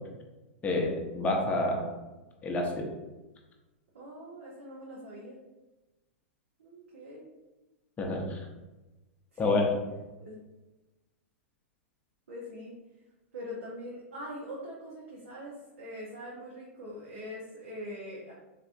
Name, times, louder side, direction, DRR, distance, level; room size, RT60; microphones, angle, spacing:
voice 1, 0.6-1.9 2.4-2.9 8.0-8.4 9.4-9.6, left 2 dB, 20° left, 0 dB, 0.7 m, -28 dB
voice 2, 3.9-5.4 6.6-7.2 9.3-9.7 10.2-10.4 12.3-12.7 13.3-18.3, equal, 80° right, -6 dB, 0.9 m, -43 dB
3.3 x 2.9 x 2.6 m, 1.1 s
hypercardioid pair, 105°, 7 cm